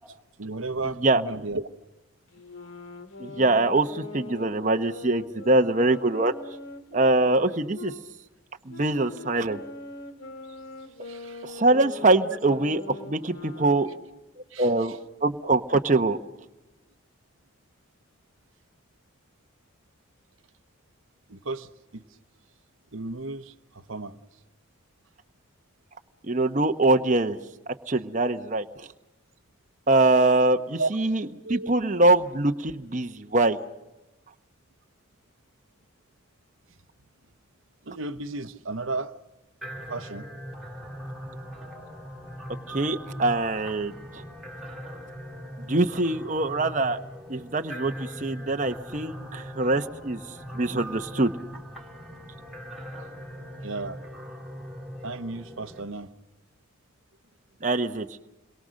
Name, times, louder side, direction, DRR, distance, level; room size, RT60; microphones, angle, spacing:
voice 1, 0.4-1.7 11.0-11.5 12.3-12.4 14.5-15.0 21.3-22.0 22.9-24.2 30.8-30.9 31.4-31.7 37.9-39.1 39.9-40.3 53.6-54.0 55.0-56.1, right 3 dB, 75° right, 10 dB, 1.0 m, -34 dB
sound 1, 2.3-8.0 8.7-14.1, left 3 dB, 75° left, 2.3 m, -42 dB
voice 2, 3.2-6.3 6.9-7.9 8.7-9.6 11.4-13.9 14.6-16.2 26.2-27.4 27.7-28.9 29.9-33.6 42.7-44.2 45.7-47.0 47.3-50.2 50.5-51.3 57.6-58.1, right 2 dB, 35° right, 6 dB, 1.0 m, -23 dB
sound 2, 39.6-55.8, equal, ahead, 3.2 m, -40 dB
29.0 x 22.0 x 6.4 m, 1.0 s
head